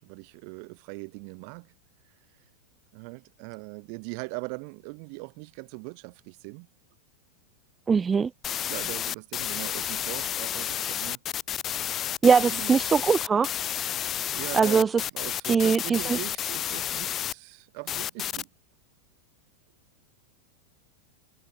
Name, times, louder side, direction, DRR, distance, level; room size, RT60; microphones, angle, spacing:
voice 1, 0.0-1.7 2.9-6.7 8.5-11.2 12.4-12.8 14.3-18.5, right 40 dB or more, 45° right, 4.3 m, -40 dB
voice 2, 7.9-8.3 12.2-13.5 14.5-14.9 15.5-16.2, right 6 dB, 15° right, 1.2 m, -21 dB
sound 1, 8.4-17.3 17.9-18.4, left 10 dB, 30° left, 2.9 m, -31 dB
figure-of-eight pair, 90°, 0 cm